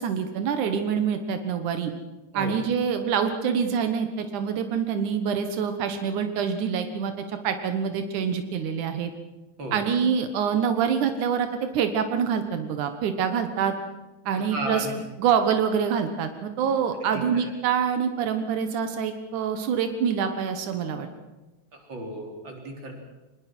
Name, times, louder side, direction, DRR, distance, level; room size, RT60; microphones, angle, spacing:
voice 1, 0.0-1.9 2.3-9.1 9.7-13.7 14.3-14.9 15.2-21.1, right 7 dB, 90° right, 8 dB, 2.8 m, -26 dB
voice 2, 14.3-14.9 17.1-17.5 21.7-22.9, right 1 dB, 40° right, 2 dB, 4.4 m, -35 dB
23.5 x 21.5 x 6.1 m, 1.1 s
omnidirectional pair, 3.4 m